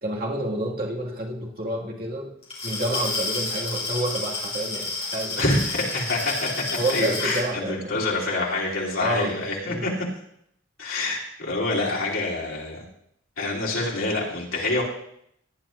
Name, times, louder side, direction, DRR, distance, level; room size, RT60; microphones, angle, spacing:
voice 1, 0.0-2.3 2.6-5.6 6.8-7.9 9.0-9.4 9.7-9.9, right 1 dB, 45° right, -3 dB, 2.1 m, -29 dB
Glass, 2.4-7.5, left 3 dB, 30° left, 2.8 m, -30 dB
voice 2, 5.4-6.6 6.9-9.9 10.8-12.8 13.4-14.8, left 2 dB, 85° left, -5 dB, 3.1 m, -26 dB
18.0 x 10.0 x 2.6 m, 0.72 s
head